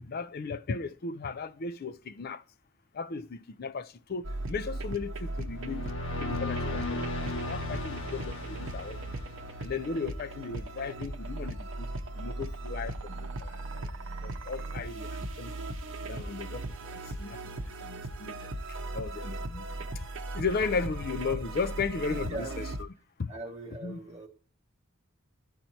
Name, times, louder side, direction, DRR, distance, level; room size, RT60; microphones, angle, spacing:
voice 1, 0.0-2.4 3.0-5.9 6.2-9.0 9.6-11.9 12.2-13.9 14.2-15.1 15.4-15.5 16.1-16.6 16.9-17.4 17.8-18.3 18.9-19.7 20.3-22.9 23.2-23.3 23.8-24.0, left 4 dB, 45° left, 0.4 m, -35 dB
sound 1, 4.2-22.8, right 2 dB, 65° right, 0.8 m, -38 dB
sound 2, 5.5-9.8, left 2 dB, 75° left, 1.5 m, -36 dB
voice 2, 22.1-22.8 23.3-24.3, right 2 dB, 30° right, 1.7 m, -40 dB
13.0 x 4.4 x 2.6 m
head